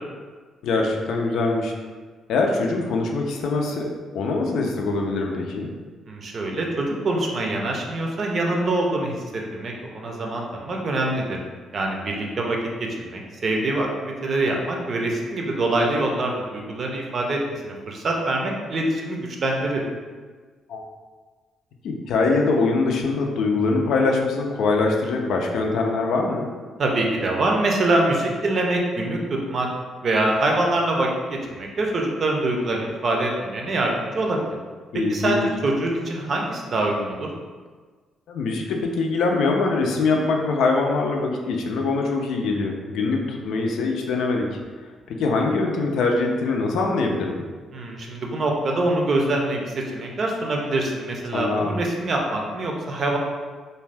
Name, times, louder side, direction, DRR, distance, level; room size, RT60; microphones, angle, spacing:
voice 1, 0.6-1.7 2.3-5.7 20.7-20.8 21.8-26.5 34.9-35.5 38.3-44.5 45.1-47.4 51.3-51.8, left 3 dB, 80° left, 1 dB, 0.4 m, -23 dB
voice 2, 6.1-11.4 11.7-12.6 13.0-19.8 26.8-29.7 30.0-34.4 35.1-37.3 47.7-53.2, right 2 dB, 50° right, 0 dB, 0.5 m, -24 dB
2.5 x 2.2 x 3.3 m, 1.5 s
cardioid pair, 90°, 0 cm